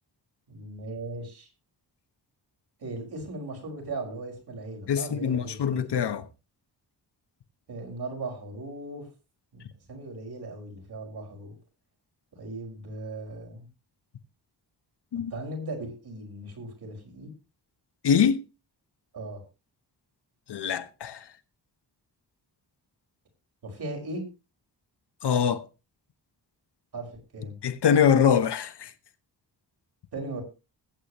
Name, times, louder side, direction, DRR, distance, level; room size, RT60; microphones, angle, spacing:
voice 1, 0.5-1.5 2.8-5.8 7.7-9.1 9.5-11.5 12.3-13.7 15.3-17.3 19.1-19.4 23.6-24.2 26.9-27.1 27.3-27.6 30.1-30.4, right 2 dB, 70° right, 5.5 m, -38 dB
voice 2, 4.9-6.3 15.1-15.3 18.0-18.4 20.5-21.3 25.2-25.6 27.6-28.9, left 7 dB, 80° left, 1.2 m, -23 dB
20.5 x 8.4 x 3.1 m
wide cardioid pair, 160°, 40 cm